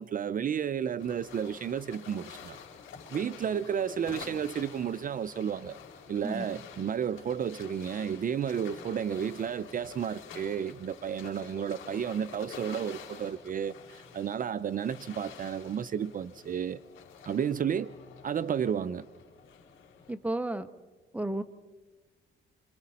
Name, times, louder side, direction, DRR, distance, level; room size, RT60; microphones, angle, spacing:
voice 1, 0.0-2.6 3.1-5.8 6.1-16.8 17.3-17.9 18.2-19.1, right 8 dB, 45° right, 0.6 m, -32 dB
sound 1, 1.0-20.1, left 6 dB, 75° left, 4.2 m, -49 dB
voice 2, 20.1-20.7 21.1-21.4, right 1 dB, 5° right, 1.2 m, -32 dB
27.0 x 26.0 x 4.2 m
cardioid pair, 90°, 20 cm